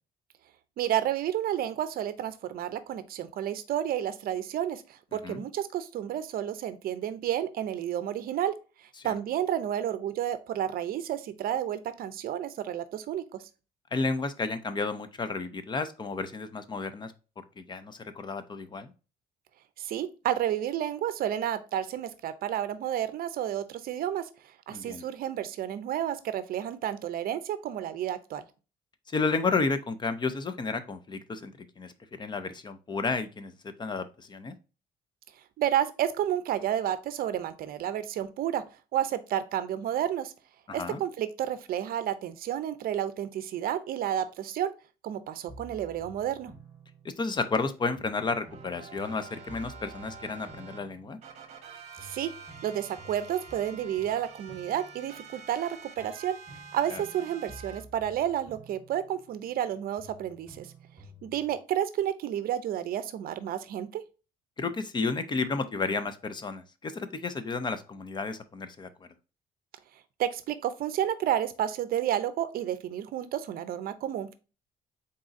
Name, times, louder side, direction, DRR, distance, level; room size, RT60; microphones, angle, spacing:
voice 1, 0.8-8.5 9.0-13.2 19.8-24.3 24.7-28.4 35.6-38.6 38.9-40.3 40.7-44.7 45.0-46.5 52.0-52.3 52.6-56.4 56.7-60.7 61.2-64.0 70.2-74.3, right 10 dB, 60° right, 0.6 m, -31 dB
voice 2, 13.9-17.1 17.6-18.9 24.7-25.1 29.1-31.9 32.2-34.5 40.7-41.0 47.0-51.2 56.9-57.0 64.6-69.1, left 4 dB, 25° left, 0.5 m, -32 dB
sound 1, 45.5-47.6 48.0-51.7 52.0-55.6 56.0-59.7 60.0-61.6, right 1 dB, 5° right, 1.9 m, -52 dB
sound 2, 48.2-50.8 51.2-57.8, right 5 dB, 40° right, 1.0 m, -48 dB
4.0 x 3.7 x 2.5 m
cardioid pair, 110°, 17 cm